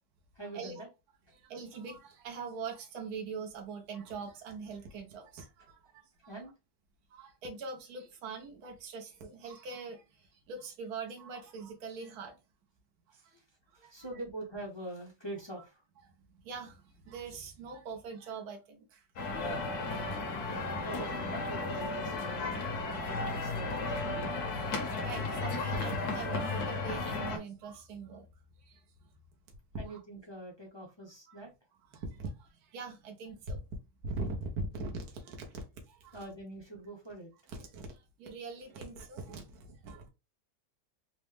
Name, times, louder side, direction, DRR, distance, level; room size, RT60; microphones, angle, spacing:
voice 1, 0.3-0.9 6.3-6.5 13.1-13.3 13.7-15.8 20.8-22.6 23.1-24.3 29.8-31.5 36.1-37.3, right 1 dB, 25° left, 0.6 m, -44 dB
voice 2, 1.3-6.3 7.1-12.4 13.1-13.4 13.7-14.1 16.3-20.6 22.2-22.4 24.5-28.3 28.6-28.8 29.8-30.0 31.3-31.4 31.9-33.6 34.0-36.2 37.5-40.1, right 4 dB, 65° right, 1.3 m, -43 dB
sound 1, 19.2-27.4, left 3 dB, 65° left, 1.4 m, -34 dB
4.1 x 2.2 x 3.3 m
omnidirectional pair, 1.9 m